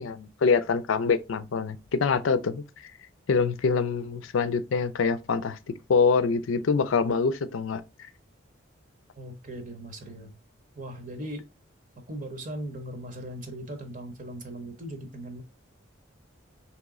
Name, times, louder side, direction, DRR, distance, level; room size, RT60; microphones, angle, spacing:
voice 1, 0.0-2.6 3.3-5.6 5.9-7.8, left 5 dB, 90° left, 0.4 m, -25 dB
voice 2, 9.2-10.3 10.8-11.5 12.1-15.4, right 1 dB, 40° right, 0.7 m, -38 dB
3.1 x 3.0 x 3.6 m
head